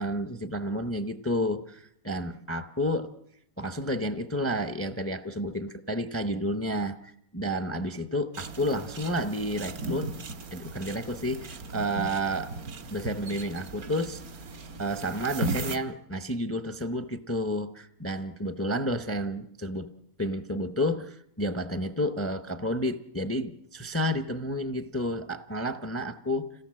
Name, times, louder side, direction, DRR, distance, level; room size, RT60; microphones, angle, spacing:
voice 1, 0.0-3.1 3.6-10.1 10.5-12.5 12.9-14.2 14.8-19.9 20.2-26.5, equal, 15° left, 11 dB, 0.7 m, -31 dB
sound 1, 8.3-15.8, right 2 dB, 85° right, 1.9 m, -37 dB
26.5 x 17.0 x 7.6 m, 0.75 s
omnidirectional pair, 1.5 m